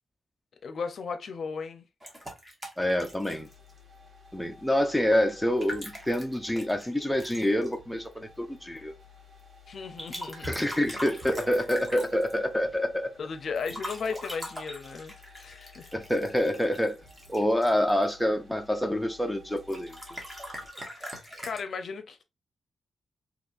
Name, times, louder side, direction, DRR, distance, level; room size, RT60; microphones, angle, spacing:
voice 1, 0.6-1.9 9.7-10.6 13.2-15.9 20.8-22.2, left 5 dB, 55° left, 0.5 m, -36 dB
sound 1, 2.0-3.8 5.4-7.7 10.0-12.4 13.6-18.1 19.5-21.6, equal, 15° right, 1.1 m, -41 dB
voice 2, 2.8-3.5 4.3-8.9 10.4-13.1 15.9-17.0 17.3-20.0, left 1 dB, ahead, 0.4 m, -27 dB
sound 2, 2.8-20.7, left 3 dB, 40° right, 1.3 m, -54 dB
4.0 x 2.8 x 2.5 m
wide cardioid pair, 175°, 0 cm